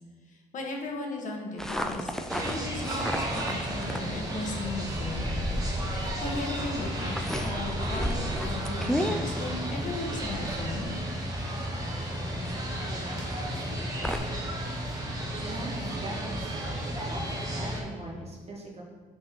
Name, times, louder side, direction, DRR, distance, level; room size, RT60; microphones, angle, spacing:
voice 1, 0.3-5.3 5.8-10.9, left 2 dB, 50° left, 1 dB, 1.4 m, -37 dB
sound 1, 1.6-14.2, equal, 5° left, 0.4 m, -35 dB
sound 2, 2.3-17.8, right 1 dB, 20° right, 1.4 m, -33 dB
voice 2, 15.4-16.7 17.1-17.2 17.5-18.8, right 1 dB, 35° right, -1 dB, 1.4 m, -40 dB
5.9 x 4.5 x 4.7 m, 1.5 s
cardioid pair, 110°, 17 cm